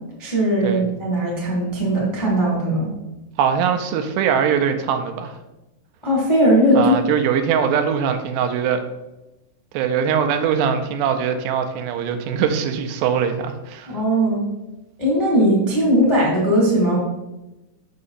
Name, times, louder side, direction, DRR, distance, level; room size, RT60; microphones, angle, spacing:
voice 1, 0.2-2.9 6.0-6.9 13.9-14.4 15.0-17.0, equal, 15° left, -5 dB, 0.9 m, -18 dB
voice 2, 3.4-5.4 6.7-8.8 9.7-14.0, right 7 dB, 85° right, 6 dB, 2.7 m, -21 dB
6.6 x 6.1 x 4.1 m, 0.98 s
omnidirectional pair, 5.0 m